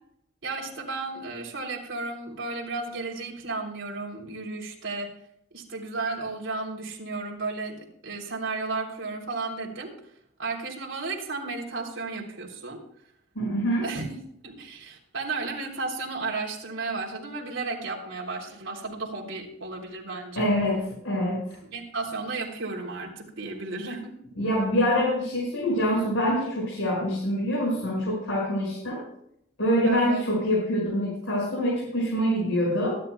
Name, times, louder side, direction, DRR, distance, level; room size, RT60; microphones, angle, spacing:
voice 1, 0.4-5.1 5.5-9.9 10.4-12.8 13.8-14.1 14.4-20.5 21.7-24.2 29.8-30.2, right 3 dB, 75° right, -1 dB, 3.4 m, -33 dB
voice 2, 13.3-13.8 20.3-21.4 24.4-29.0 29.6-32.9, equal, 85° left, -5 dB, 6.3 m, -25 dB
24.0 x 11.0 x 2.3 m, 0.74 s
head